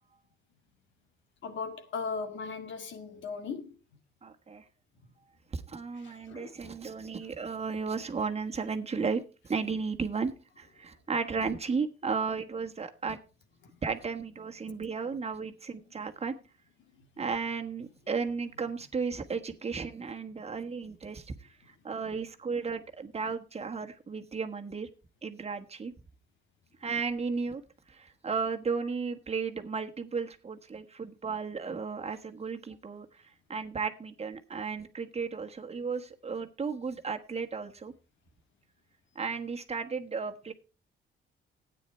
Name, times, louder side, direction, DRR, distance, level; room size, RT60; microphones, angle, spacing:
voice 1, 1.4-3.8 6.0-6.7 13.7-13.8 17.0-17.1, left 5 dB, 70° left, 2.0 m, -38 dB
voice 2, 4.2-4.6 5.5-13.2 13.8-16.3 17.2-21.5 21.8-24.9 25.2-25.9 26.8-27.6 27.9-33.1 33.5-37.9 39.1-40.5, right 5 dB, 30° right, 1.4 m, -34 dB
13.0 x 9.2 x 4.4 m
cardioid pair, 90°, 20 cm